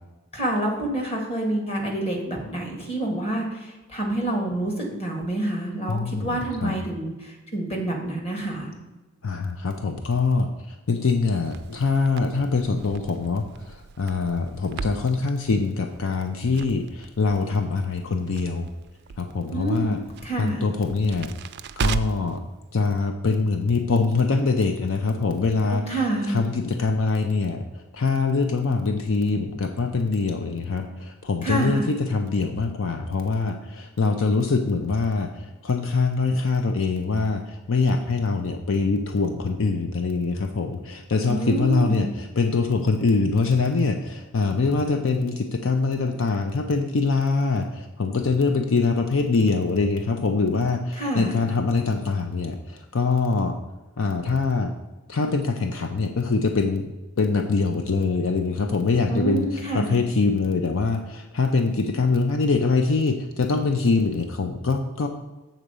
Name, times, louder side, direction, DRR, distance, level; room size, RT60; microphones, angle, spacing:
voice 1, 0.3-8.7 19.5-20.7 25.6-26.4 31.4-31.9 41.2-42.1 51.0-51.4 59.1-60.0, right 1 dB, 30° left, 0 dB, 1.7 m, -28 dB
voice 2, 5.9-6.8 9.2-18.7 19.2-20.0 20.4-21.3 21.8-22.4 22.7-26.0 26.3-53.6 54.0-54.7 55.1-65.1, left 4 dB, 75° left, 6 dB, 0.6 m, -24 dB
Crackle, 11.4-22.4, right 5 dB, 55° right, 0.4 m, -36 dB
7.4 x 4.0 x 6.8 m, 1.1 s
head